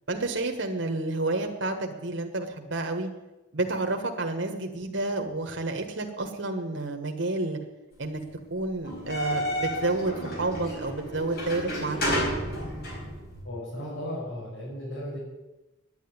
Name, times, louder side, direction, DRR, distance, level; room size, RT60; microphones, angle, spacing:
voice 1, 0.1-3.1 3.5-7.6 8.0-8.2 8.5-12.0, right 2 dB, 65° right, 3 dB, 1.4 m, -30 dB
sound 1, 8.8-13.4, equal, 55° left, 5.1 m, -31 dB
voice 2, 13.4-15.2, left 1 dB, 90° left, -5 dB, 5.6 m, -35 dB
10.5 x 9.0 x 9.7 m, 1.1 s
head